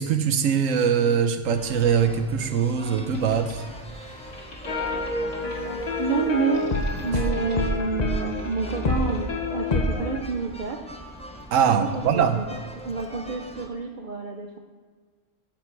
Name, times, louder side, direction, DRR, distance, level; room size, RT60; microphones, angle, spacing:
voice 1, 0.0-3.6 11.5-12.4, right 7 dB, 90° right, 9 dB, 1.1 m, -22 dB
sound 1, 1.4-13.7, equal, 5° left, 0.5 m, -41 dB
Boat Water vehicle, 2.9-9.8, left 2 dB, 55° left, 2.0 m, -47 dB
sound 2, 4.7-10.2, left 2 dB, 35° left, 0.9 m, -27 dB
voice 2, 6.0-6.7 7.0-10.8 11.6-12.6 12.8-14.6, right 5 dB, 50° right, 2 dB, 0.7 m, -28 dB
14.5 x 5.2 x 4.6 m, 1.5 s
omnidirectional pair, 1.3 m